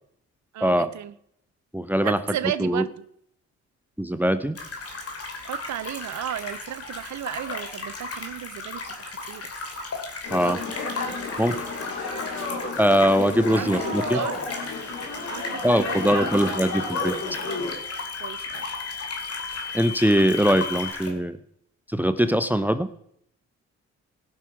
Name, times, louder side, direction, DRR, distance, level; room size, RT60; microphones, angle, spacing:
voice 1, 0.5-1.1 2.0-2.9 5.4-9.5 13.5-14.4 15.3-15.6 15.9-16.4 18.2-18.6, right 11 dB, 65° right, 16 dB, 0.6 m, -34 dB
voice 2, 1.7-2.2 2.6-2.8 4.0-4.6 10.3-10.6 11.4-11.6 12.8-14.2 15.6-17.1 19.7-21.4 21.9-23.0, equal, 5° right, 12 dB, 0.8 m, -22 dB
sound 1, 4.6-21.1, left 3 dB, 50° left, 2.7 m, -36 dB
sound 2, 10.2-17.7, left 3 dB, 70° left, 3.0 m, -32 dB
sound 3, 14.5-20.9, left 7 dB, 30° left, 1.7 m, -38 dB
17.5 x 6.0 x 4.6 m, 0.70 s
supercardioid pair, 55°, 31 cm